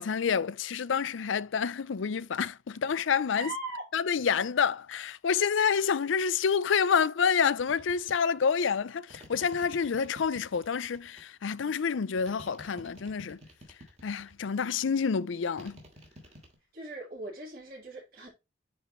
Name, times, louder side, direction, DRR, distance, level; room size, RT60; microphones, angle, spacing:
voice 1, 0.0-3.5 3.9-13.4 14.0-15.8, left 6 dB, 75° left, 0.5 m, -28 dB
voice 2, 3.3-3.9 16.7-18.3, right 2 dB, 50° right, 4.6 m, -39 dB
sound 1, 7.6-8.2 9.1-11.2 12.2-14.5 15.6-16.5, equal, 35° right, 2.5 m, -50 dB
9.2 x 4.4 x 3.1 m
head